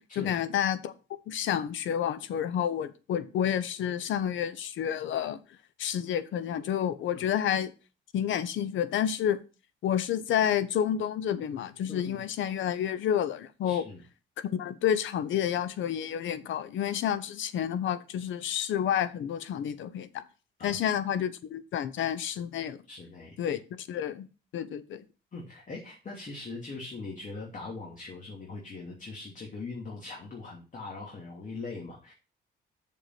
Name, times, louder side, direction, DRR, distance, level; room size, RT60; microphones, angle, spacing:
voice 1, 0.2-0.9 1.3-5.4 5.8-7.7 8.1-9.4 9.8-13.8 14.4-20.1 20.6-22.8 23.4-24.3 24.5-25.0, left 9 dB, 75° left, 0.9 m, -29 dB
voice 2, 11.9-12.2 13.6-14.0 20.6-20.8 22.9-23.6 25.3-32.1, left 3 dB, 40° left, 2.7 m, -41 dB
6.7 x 5.4 x 5.9 m
cardioid pair, 90°, 20 cm